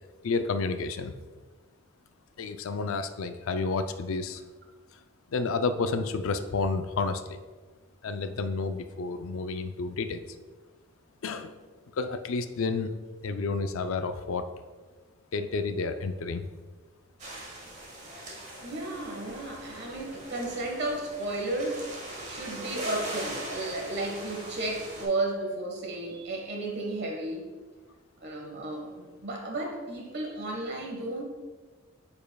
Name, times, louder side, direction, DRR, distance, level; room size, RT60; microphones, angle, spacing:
voice 1, 0.2-1.2 2.4-4.4 5.3-7.4 8.0-10.3 11.2-11.5 12.0-12.9 13.2-14.5 15.3-16.4, left 4 dB, 75° left, 9 dB, 0.4 m, -30 dB
sound 1, 17.2-25.0, right 1 dB, 35° right, 1.3 m, -41 dB
voice 2, 18.6-21.8 22.3-27.4 28.2-31.2, right 2 dB, 50° right, 1 dB, 1.3 m, -33 dB
8.7 x 5.3 x 2.3 m, 1.4 s
head